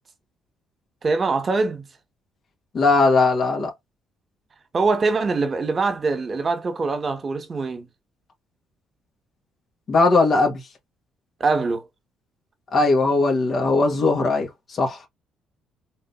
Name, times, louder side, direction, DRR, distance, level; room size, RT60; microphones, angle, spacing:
voice 1, 1.0-1.9 4.7-7.9 11.4-11.9, right 3 dB, 40° right, 1.5 m, -23 dB
voice 2, 2.7-3.7 9.9-10.6 12.7-15.0, left 3 dB, 50° left, 1.6 m, -19 dB
3.9 x 3.8 x 2.6 m
supercardioid pair, 75°, 0 cm